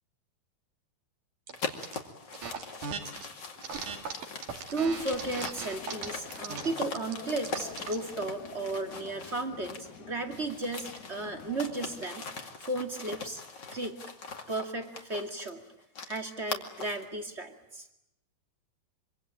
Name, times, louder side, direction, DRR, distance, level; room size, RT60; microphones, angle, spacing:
sound 1, 1.5-10.0 10.3-17.1, left 4 dB, 35° left, 2.3 m, -41 dB
sound 2, 1.5-2.0 2.3-3.3 3.6-8.0, right 6 dB, 55° right, 3.6 m, -39 dB
voice 1, 4.7-12.3 12.6-13.4 13.7-14.0 14.5-15.6 16.1-17.9, right 2 dB, 25° right, 5 dB, 1.6 m, -34 dB
sound 3, 5.8-12.0, left 8 dB, 55° left, 2.6 m, -48 dB
25.5 x 25.0 x 8.8 m, 0.84 s
omnidirectional pair, 4.6 m